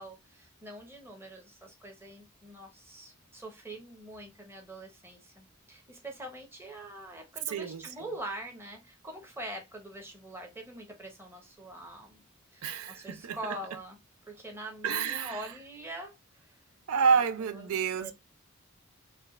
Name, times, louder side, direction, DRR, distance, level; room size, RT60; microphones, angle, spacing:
voice 1, 0.0-12.2 12.5-14.0 14.3-16.6 17.1-17.2 17.5-17.7 18.0-18.1, right 1 dB, 10° right, 0.9 m, -44 dB
voice 2, 7.5-7.9 12.6-13.4 14.8-15.5 16.9-18.1, right 6 dB, 85° right, 0.4 m, -29 dB
4.4 x 2.3 x 3.1 m
head